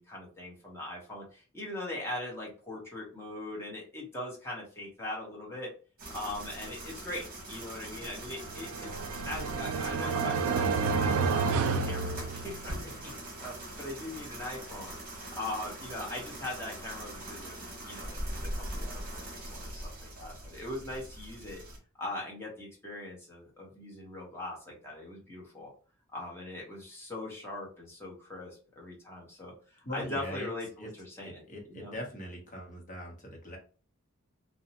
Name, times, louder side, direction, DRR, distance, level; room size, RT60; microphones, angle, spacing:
voice 1, 0.0-5.7 6.1-8.9 9.3-13.1 13.4-21.6 22.0-25.7 26.1-31.4 31.7-32.0, left 1 dB, 10° left, -3 dB, 0.9 m, -41 dB
sound 1, 6.0-21.8, right 1 dB, 40° right, 0.9 m, -42 dB
sound 2, 8.4-12.8, right 5 dB, 85° right, 0.3 m, -30 dB
voice 2, 29.8-30.5 30.8-30.9 31.2-33.6, left 1 dB, 40° left, 0 dB, 0.8 m, -41 dB
2.5 x 2.1 x 2.8 m, 0.38 s
head